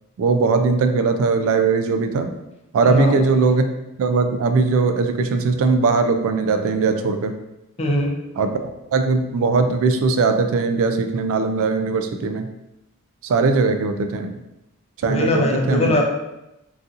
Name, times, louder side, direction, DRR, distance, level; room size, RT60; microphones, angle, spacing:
voice 1, 0.2-2.3 2.7-3.6 4.0-7.3 8.4-12.5 13.2-14.4 15.0-15.9, right 4 dB, 65° right, 7 dB, 0.3 m, -20 dB
voice 2, 2.9-3.2 7.8-8.1 15.0-16.0, left 1 dB, 30° left, 0 dB, 0.5 m, -20 dB
3.9 x 2.6 x 2.4 m, 0.91 s
head